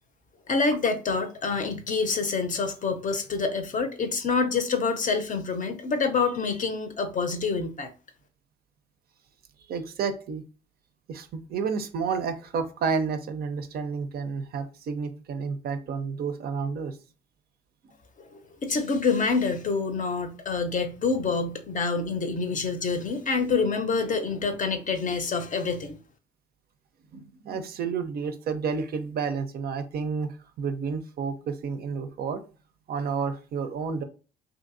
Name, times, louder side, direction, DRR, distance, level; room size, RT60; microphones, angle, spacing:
voice 1, 0.5-7.9 18.2-26.0, left 4 dB, 40° left, 0.6 m, -27 dB
voice 2, 9.7-10.4 11.1-17.0 27.1-32.4 32.9-34.0, right 5 dB, 50° right, 0.4 m, -30 dB
2.7 x 2.6 x 2.5 m
hypercardioid pair, 55°, 21 cm